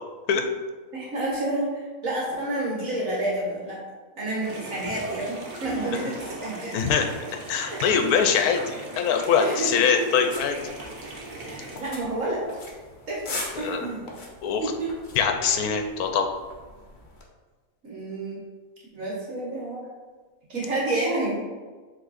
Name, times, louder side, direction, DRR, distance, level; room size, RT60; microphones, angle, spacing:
voice 1, 0.9-3.8 4.2-6.7 7.6-7.8 9.3-9.7 10.0-10.1 11.4-12.4 13.1-14.0 14.6-14.9 17.8-18.4 18.9-19.9 20.5-21.3, right 2 dB, 60° right, -4 dB, 1.7 m, -29 dB
sound 1, 4.4-11.8, right 2 dB, 80° right, 1.6 m, -39 dB
voice 2, 6.7-7.1 7.5-10.6 13.6-13.9 14.4-14.7 15.2-16.3, left 6 dB, 90° left, 5 dB, 1.2 m, -23 dB
sound 2, 10.3-17.2, left 2 dB, 40° left, 1.0 m, -41 dB
7.5 x 3.5 x 4.1 m, 1.4 s
omnidirectional pair, 1.6 m